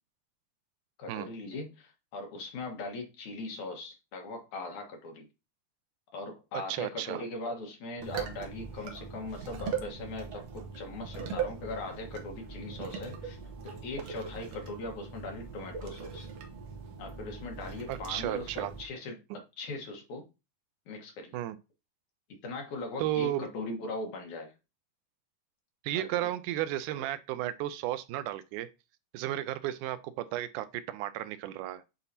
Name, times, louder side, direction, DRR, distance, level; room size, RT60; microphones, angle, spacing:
voice 1, 1.0-5.3 6.1-13.4 13.6-16.3 17.0-20.2 20.9-21.4 22.4-24.5 25.9-26.3, left 2 dB, 70° left, 2.8 m, -40 dB
voice 2, 6.7-7.2 17.9-18.7 21.3-21.6 23.0-23.5 25.8-28.7 29.1-31.8, right 13 dB, 85° right, 2.0 m, -33 dB
sound 1, 8.0-18.9, right 6 dB, 60° right, 2.0 m, -40 dB
9.0 x 4.0 x 2.8 m
omnidirectional pair, 3.7 m